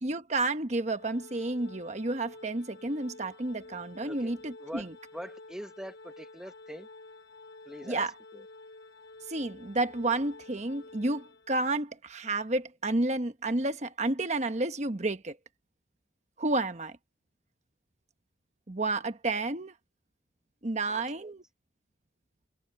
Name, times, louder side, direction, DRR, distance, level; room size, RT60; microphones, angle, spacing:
voice 1, 0.0-4.9 7.8-8.1 9.3-15.4 16.4-17.0 18.7-19.7 20.6-21.4, right 2 dB, 35° right, 1.1 m, -31 dB
Organ, 1.0-11.8, left 2 dB, 70° left, 3.7 m, -50 dB
voice 2, 4.0-4.3 4.6-4.9 5.1-6.9 7.7-8.0 8.3-8.4 20.9-21.3, equal, 5° right, 1.2 m, -43 dB
head